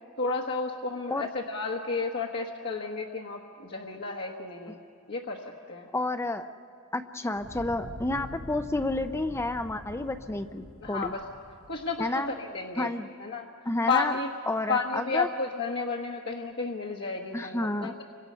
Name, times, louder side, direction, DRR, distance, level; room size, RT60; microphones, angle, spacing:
voice 1, 0.2-4.8 5.1-5.9 10.8-11.2 11.7-12.9 13.2-13.5 13.9-14.3 14.7-18.0, left 4 dB, 55° left, -2 dB, 1.3 m, -32 dB
voice 2, 5.9-6.5 6.9-11.1 12.0-12.3 12.8-13.1 13.7-14.1 14.5-15.3 17.3-18.0, left 2 dB, 10° left, 8 dB, 0.5 m, -30 dB
Fire, 7.3-12.5, equal, 80° left, 3.6 m, -45 dB
29.5 x 25.5 x 5.6 m, 2.4 s
head